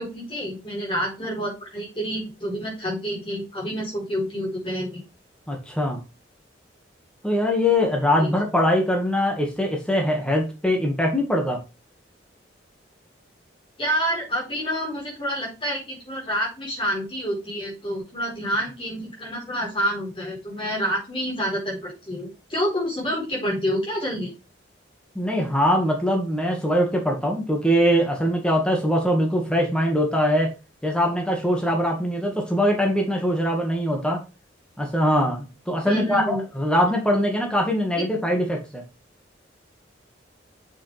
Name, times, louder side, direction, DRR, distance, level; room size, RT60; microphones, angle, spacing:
voice 1, 0.0-5.0 8.2-8.3 13.8-24.3 35.8-36.4, equal, 25° left, -3 dB, 4.4 m, -28 dB
voice 2, 5.5-6.0 7.2-11.6 25.2-30.5 30.8-34.2 34.8-38.8, equal, 5° left, 0 dB, 1.9 m, -22 dB
7.1 x 7.1 x 3.5 m, 0.30 s
head